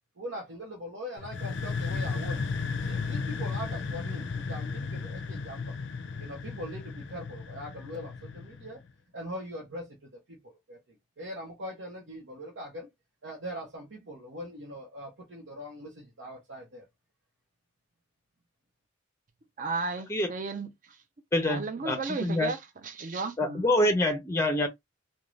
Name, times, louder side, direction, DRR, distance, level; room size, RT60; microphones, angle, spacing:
voice 1, 0.2-2.4 2.7-5.7 6.2-8.8 9.1-12.9 13.2-16.9, equal, 85° right, 0.9 m, -41 dB
sound 1, 1.2-8.8, left 4 dB, 70° left, 0.4 m, -34 dB
voice 2, 19.6-20.7 21.5-23.7, right 4 dB, 45° right, 0.5 m, -34 dB
voice 3, 21.3-22.5 23.4-24.7, left 1 dB, 15° left, 0.5 m, -26 dB
2.5 x 2.2 x 3.1 m
head